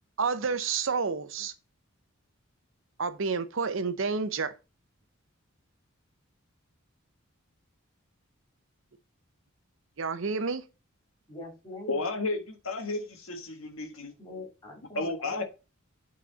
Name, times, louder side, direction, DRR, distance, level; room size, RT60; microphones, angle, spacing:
voice 1, 0.2-1.5 3.0-4.5 10.0-10.6, right 5 dB, 65° right, 0.7 m, -29 dB
voice 2, 11.3-12.0 14.2-15.4, left 1 dB, 20° left, 3.7 m, -43 dB
voice 3, 11.9-14.1 14.9-15.4, left 2 dB, 75° left, 1.6 m, -32 dB
8.5 x 4.2 x 4.0 m
head